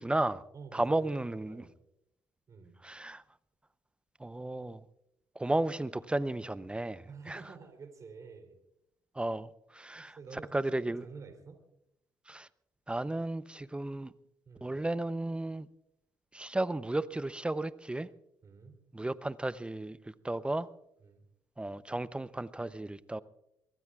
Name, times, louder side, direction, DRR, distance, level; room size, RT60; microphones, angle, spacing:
voice 1, 0.0-0.4 0.7-1.6 2.8-3.2 4.2-4.8 5.4-7.4 9.1-10.2 10.5-11.0 12.3-12.5 12.9-14.1 14.6-15.7 16.3-18.1 18.9-20.7 21.6-23.2, right 2 dB, 15° right, 16 dB, 0.7 m, -34 dB
voice 2, 0.5-1.7 2.5-2.8 7.1-8.6 9.9-11.6 14.4-14.8 18.4-18.8 21.0-21.2, right 5 dB, 45° right, 6 dB, 3.3 m, -49 dB
25.0 x 23.0 x 2.4 m, 0.83 s
hypercardioid pair, 55°, 8 cm